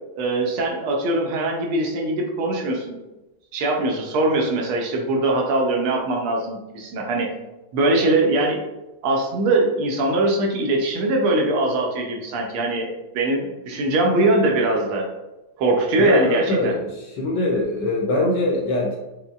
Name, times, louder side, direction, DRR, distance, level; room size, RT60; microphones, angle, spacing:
voice 1, 0.2-3.0 3.5-7.3 7.7-8.6 9.0-15.1 15.6-16.7, right 2 dB, 80° right, 0 dB, 1.5 m, -22 dB
voice 2, 16.0-19.0, left 2 dB, 75° left, -1 dB, 1.0 m, -22 dB
5.3 x 2.0 x 2.3 m, 1.0 s
omnidirectional pair, 2.3 m